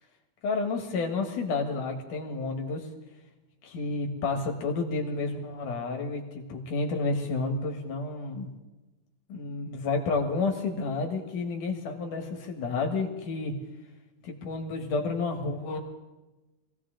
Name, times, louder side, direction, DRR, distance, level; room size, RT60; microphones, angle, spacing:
voice 1, 0.4-2.9 3.6-8.5 9.3-13.5 14.2-15.8, left 3 dB, 80° left, 3 dB, 3.1 m, -30 dB
23.0 x 16.5 x 3.8 m, 1.1 s
omnidirectional pair, 3.6 m